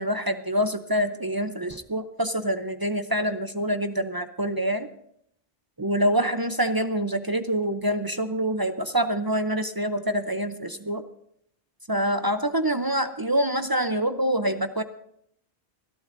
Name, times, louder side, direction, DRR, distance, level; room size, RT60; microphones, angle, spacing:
voice 1, 0.0-4.9 5.8-11.0 11.9-14.8, right 1 dB, 30° right, 9 dB, 0.5 m, -26 dB
26.0 x 12.0 x 2.6 m, 0.71 s
omnidirectional pair, 1.0 m